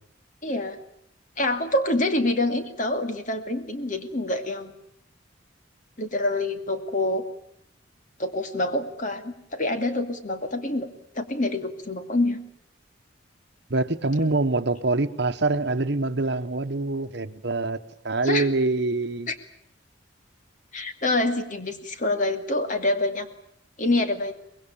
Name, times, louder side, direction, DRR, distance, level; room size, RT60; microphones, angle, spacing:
voice 1, 0.4-0.8 1.4-4.7 6.0-7.2 8.2-10.9 11.1-12.4 18.2-18.5 19.3-19.4 20.7-23.3 23.8-24.3, left 2 dB, 40° left, 2.4 m, -26 dB
voice 2, 13.7-17.8 18.0-19.3, right 2 dB, 60° right, 1.1 m, -25 dB
24.5 x 21.0 x 8.9 m
head